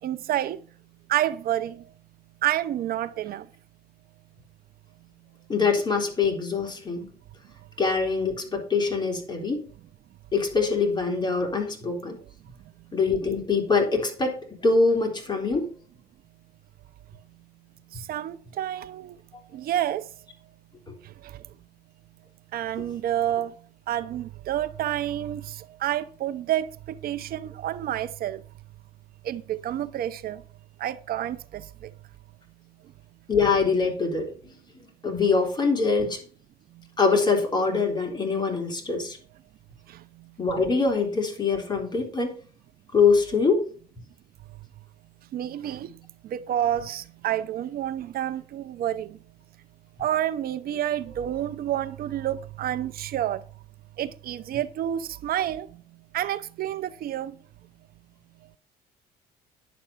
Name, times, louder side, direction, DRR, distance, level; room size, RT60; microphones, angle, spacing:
voice 1, 0.0-0.6 1.1-1.8 2.4-3.5 17.9-19.2 19.5-20.0 21.0-21.4 22.5-23.5 23.9-28.4 29.2-30.4 30.8-31.9 39.9-40.0 45.3-46.0 46.2-49.2 50.0-53.4 54.0-55.7 56.1-57.4, right 12 dB, 60° right, 0.7 m, -29 dB
voice 2, 5.5-7.1 7.8-9.7 10.3-12.2 12.9-14.4 14.6-15.7 33.3-34.6 35.0-36.2 37.0-39.2 40.4-42.3 42.9-43.6, left 4 dB, 25° left, 3.9 m, -24 dB
10.5 x 7.7 x 5.6 m
cardioid pair, 110°, 17 cm